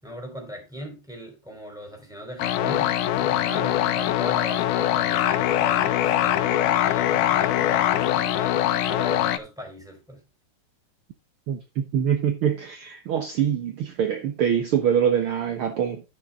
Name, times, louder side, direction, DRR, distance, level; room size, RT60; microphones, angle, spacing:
voice 1, 0.0-8.6 8.9-10.2, left 1 dB, ahead, 4.0 m, -39 dB
sound 1, 2.4-9.4, left 12 dB, 85° left, 2.3 m, -22 dB
voice 2, 11.5-16.0, right 8 dB, 65° right, 1.3 m, -24 dB
12.0 x 6.8 x 3.6 m
omnidirectional pair, 3.6 m